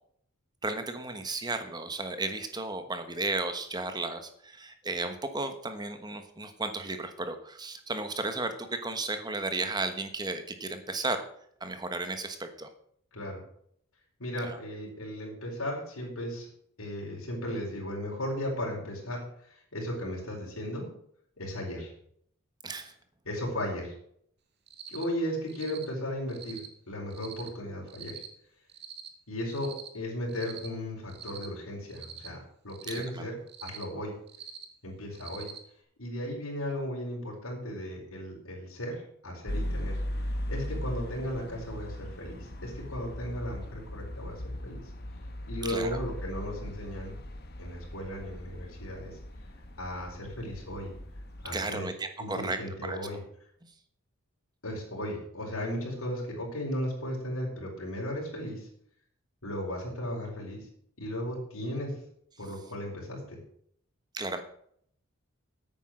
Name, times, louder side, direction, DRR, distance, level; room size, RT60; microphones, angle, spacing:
voice 1, 0.6-11.2 11.6-12.7 14.4-14.6 22.6-22.9 32.9-33.3 45.7-45.9 51.5-53.0 64.1-64.4, right 2 dB, 20° right, 8 dB, 1.2 m, -34 dB
voice 2, 14.2-16.5 16.8-20.9 21.4-21.9 23.2-23.9 24.9-28.1 29.3-32.4 32.6-34.1 34.8-35.5 36.0-40.0 40.5-44.8 45.5-47.1 47.6-49.2 49.8-50.9 51.4-51.9 52.2-53.2 54.6-58.7 59.4-60.6 61.0-61.9 62.4-63.4, equal, 80° left, -4 dB, 4.5 m, -36 dB
Cricket, 24.7-25.0 25.5-25.8 26.3-26.7 27.1-27.5 27.9-28.3 28.7-29.1 29.5-29.9 30.3-30.7 31.1-31.5 31.9-32.3 32.7-33.0 33.5-33.8 34.3-34.6 35.1-35.6, right 9 dB, 50° right, 1.6 m, -44 dB
sound 1, 39.5-51.5, left 1 dB, 45° left, 1.4 m, -38 dB
10.0 x 9.1 x 6.5 m, 0.66 s
head